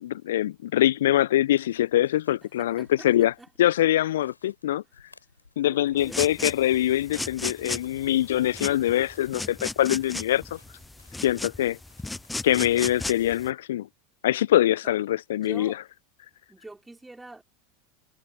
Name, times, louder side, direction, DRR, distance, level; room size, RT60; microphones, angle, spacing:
voice 1, 0.0-3.3 3.6-4.8 5.6-10.6 11.2-11.8 12.4-13.9 14.2-15.7, left 13 dB, 65° left, 0.9 m, -23 dB
sound 1, 1.5-13.4, left 4 dB, 85° left, 7.5 m, -59 dB
voice 2, 2.6-3.5 4.8-4.9 5.2-5.3 5.7-6.3 14.8-15.0 15.3-15.8 16.5-17.4, right 2 dB, 10° right, 4.4 m, -45 dB
sound 2, 6.0-13.5, left 2 dB, 10° left, 0.4 m, -35 dB
figure-of-eight pair, 80°, 0 cm